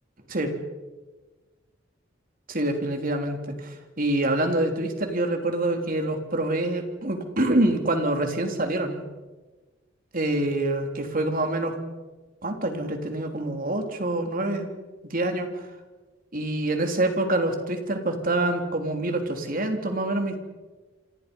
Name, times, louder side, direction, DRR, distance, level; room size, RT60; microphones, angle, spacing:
voice 1, 2.5-9.0 10.1-11.8 12.4-14.7 15.1-15.7 16.3-20.4, right 1 dB, 45° right, 4 dB, 3.4 m, -26 dB
28.0 x 26.0 x 5.4 m, 1.2 s
head